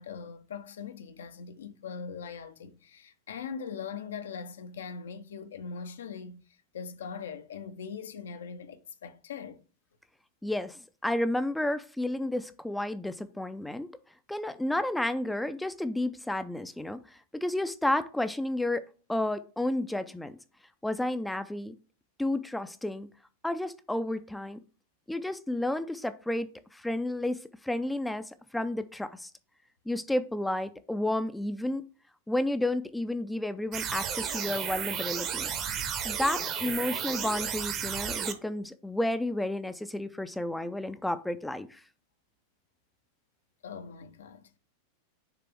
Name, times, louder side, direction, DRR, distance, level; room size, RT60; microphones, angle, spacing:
voice 1, 0.0-6.4 6.7-9.6 43.6-44.6, left 6 dB, 65° left, 0.7 m, -41 dB
voice 2, 10.4-13.9 14.3-18.8 19.1-20.3 20.8-21.7 22.2-23.1 23.4-24.6 25.1-28.2 28.5-29.3 29.9-31.8 32.3-35.5 36.0-41.8, left 1 dB, 5° left, 0.5 m, -31 dB
sound 1, 33.7-38.3, right 8 dB, 35° right, 0.9 m, -33 dB
6.9 x 3.4 x 4.5 m
figure-of-eight pair, 90°, 0 cm